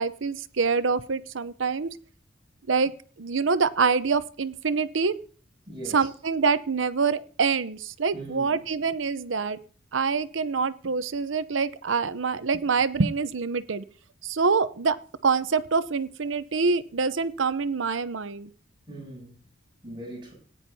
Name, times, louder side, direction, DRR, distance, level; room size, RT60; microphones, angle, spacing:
voice 1, 0.0-1.9 2.7-2.9 3.2-5.1 5.9-9.6 9.9-13.8 14.2-15.0 15.2-18.5, right 5 dB, 85° right, 0.7 m, -25 dB
voice 2, 5.7-6.1 8.1-8.6 18.9-19.4 19.8-20.3, right 1 dB, 25° right, 7.8 m, -40 dB
18.0 x 10.0 x 2.8 m
head